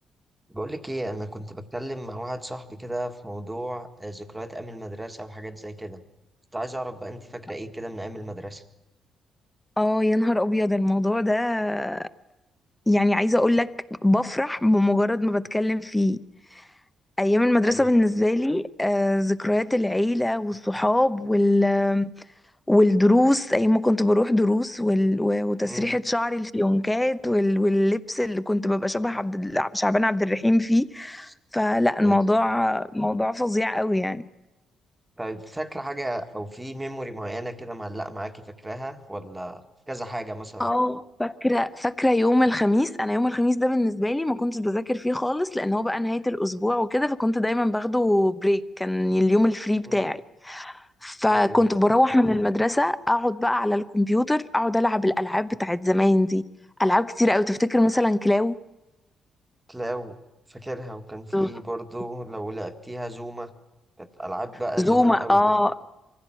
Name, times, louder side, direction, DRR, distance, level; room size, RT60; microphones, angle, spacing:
voice 1, 0.5-6.0 6.5-8.6 17.6-17.9 25.6-25.9 32.0-32.2 35.2-40.7 49.8-50.0 51.3-51.6 59.7-60.2 60.5-63.5 64.0-65.4, right 1 dB, 10° right, 1.7 m, -34 dB
voice 2, 9.8-12.1 12.9-16.2 17.2-22.1 22.7-34.2 40.6-56.4 56.8-58.6 61.3-61.5 64.8-65.7, left 1 dB, 10° left, 0.9 m, -22 dB
23.5 x 15.5 x 9.0 m
cardioid pair, 90°, 0 cm